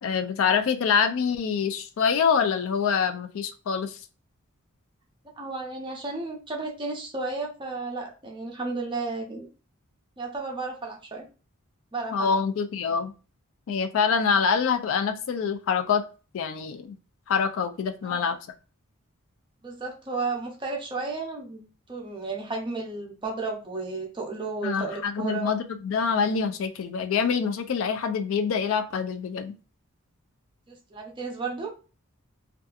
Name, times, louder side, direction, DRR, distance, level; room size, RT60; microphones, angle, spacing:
voice 1, 0.0-4.0 12.1-13.1 13.7-16.0 16.3-17.0 17.3-18.4 24.6-29.5, left 6 dB, 65° left, 8 dB, 0.3 m, -25 dB
voice 2, 5.4-9.5 10.2-11.3 11.9-12.4 18.0-18.3 19.6-25.5 30.7-31.7, right 3 dB, 20° right, 1 dB, 0.6 m, -33 dB
2.6 x 2.3 x 2.3 m, 0.34 s
head